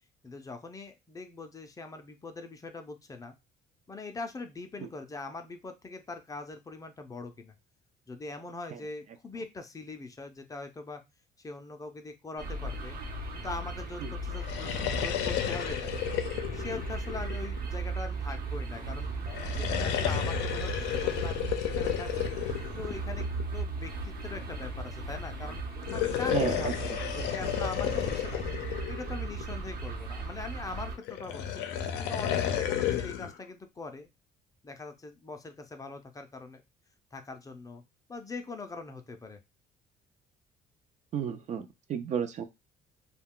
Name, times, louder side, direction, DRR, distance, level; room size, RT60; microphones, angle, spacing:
voice 1, 0.2-3.4 3.9-7.5 8.1-11.0 11.4-13.0 13.3-16.2 16.5-22.3 22.8-25.6 25.9-28.4 28.9-31.6 32.0-34.1 34.6-36.6 37.1-37.8 38.1-39.4, left 3 dB, 20° left, 6 dB, 0.5 m, -42 dB
sound 1, 12.4-31.0, right 3 dB, 65° right, 0.9 m, -37 dB
sound 2, 14.3-18.0 19.3-23.6 25.8-29.8 31.1-33.3, left 10 dB, 90° left, 0.5 m, -32 dB
voice 2, 26.3-27.0 41.1-42.4, right 8 dB, 45° right, 9 dB, 0.4 m, -33 dB
2.3 x 2.2 x 3.6 m, 0.22 s
cardioid pair, 110°, 17 cm